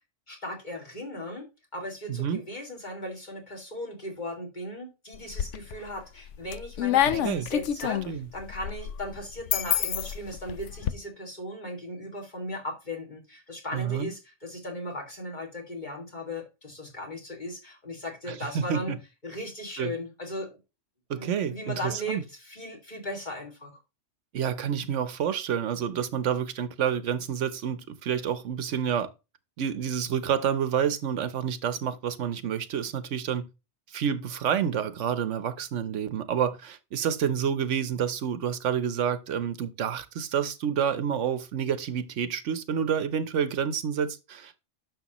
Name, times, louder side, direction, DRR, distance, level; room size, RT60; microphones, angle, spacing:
voice 1, 0.3-18.9 19.2-20.6 21.1-23.8, left 1 dB, 40° left, 2.5 m, -37 dB
voice 2, 2.1-2.4 7.2-7.5 8.1-8.3 13.7-14.1 18.3-19.0 19.8-19.9 21.1-22.2 24.3-29.1 29.6-33.5 33.9-44.6, right 8 dB, 85° right, 1.1 m, -29 dB
sound 1, 5.1-5.9 6.3-10.9, left 10 dB, 85° left, 1.0 m, -28 dB
10.5 x 6.6 x 3.0 m
omnidirectional pair, 1.2 m